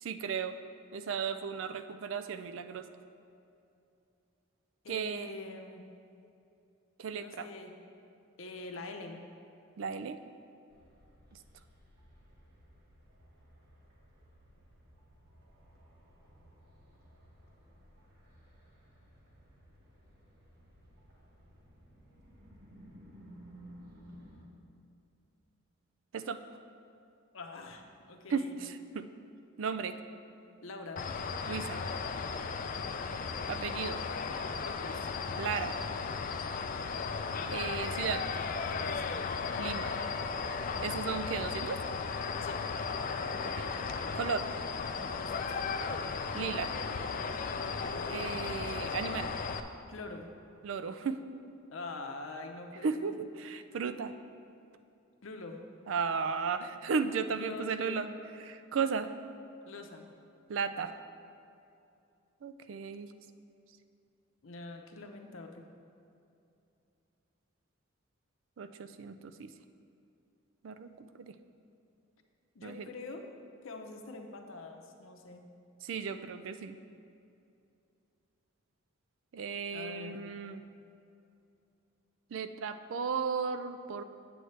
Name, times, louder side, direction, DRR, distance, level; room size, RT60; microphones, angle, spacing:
voice 1, 0.0-0.6 0.9-2.9 4.9-5.4 7.0-7.5 9.8-10.2 26.1-26.4 28.3-29.1 29.6-30.0 31.4-31.8 33.5-34.0 35.4-35.8 37.5-38.2 39.6-39.9 40.8-41.8 43.4-43.7 44.1-44.5 46.3-46.8 48.1-49.3 50.6-51.2 52.8-54.1 55.9-58.1 58.4-59.1 60.5-60.9 62.4-63.1 68.6-69.5 70.6-71.3 72.6-72.9 75.8-76.8 79.3-80.6 82.3-84.0, right 5 dB, 70° right, 10 dB, 0.4 m, -35 dB
voice 2, 4.8-5.9 7.2-7.8 8.4-9.2 27.3-28.6 30.6-31.0 34.6-35.1 38.6-39.2 42.4-42.6 44.9-45.6 47.6-48.3 49.9-50.3 51.7-53.1 55.2-55.6 57.4-58.1 59.6-60.0 64.4-65.6 72.5-73.2 73.6-75.5 79.7-80.3, left 3 dB, 75° left, 4 dB, 0.7 m, -45 dB
sound 1, 10.7-24.5, equal, 50° right, 1.1 m, -57 dB
sound 2, 31.0-49.6, left 5 dB, 40° left, 0.3 m, -35 dB
8.0 x 7.8 x 3.2 m, 2.6 s
head